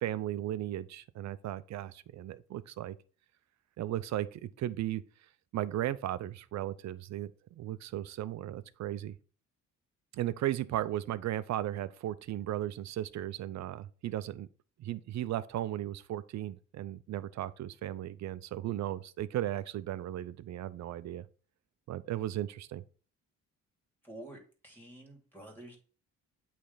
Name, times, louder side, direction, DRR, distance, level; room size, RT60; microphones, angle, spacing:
voice 1, 0.0-3.0 3.8-5.0 5.5-9.2 10.1-14.5 14.8-21.3 21.9-22.8, right 13 dB, 65° right, 0.6 m, -36 dB
voice 2, 24.0-24.4 24.6-25.8, right 1 dB, 5° left, 2.8 m, -48 dB
8.4 x 3.4 x 4.0 m
cardioid pair, 90°, 30 cm